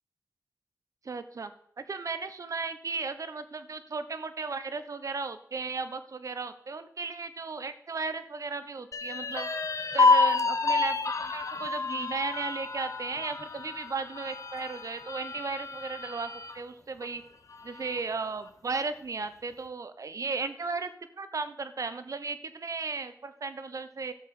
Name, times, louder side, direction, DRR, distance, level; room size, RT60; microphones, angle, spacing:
voice 1, 1.0-1.5 1.8-9.5 9.9-17.2 17.6-20.9 21.2-24.1, right 4 dB, 60° right, 11 dB, 0.9 m, -35 dB
sound 1, 8.9-16.6 17.0-17.1 17.5-18.2, left 4 dB, 60° left, 1.1 m, -29 dB
12.5 x 7.9 x 6.0 m, 0.71 s
wide cardioid pair, 95°, 6 cm